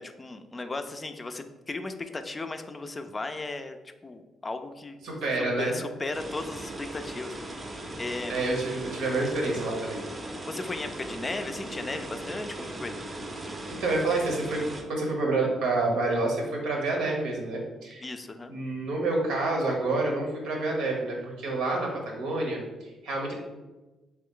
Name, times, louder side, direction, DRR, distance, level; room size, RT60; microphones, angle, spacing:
voice 1, 0.0-3.8 4.0-5.1 5.6-7.4 8.0-8.3 10.4-12.9 18.0-18.5, left 3 dB, 25° left, 8 dB, 0.3 m, -36 dB
voice 2, 5.0-5.7 8.3-10.0 13.7-18.0 18.5-23.3, right 2 dB, 90° right, 0 dB, 1.0 m, -28 dB
sound 1, 6.1-14.8, right 1 dB, 30° right, 0.6 m, -38 dB
3.3 x 3.0 x 3.7 m, 1.1 s
cardioid pair, 90°, 0 cm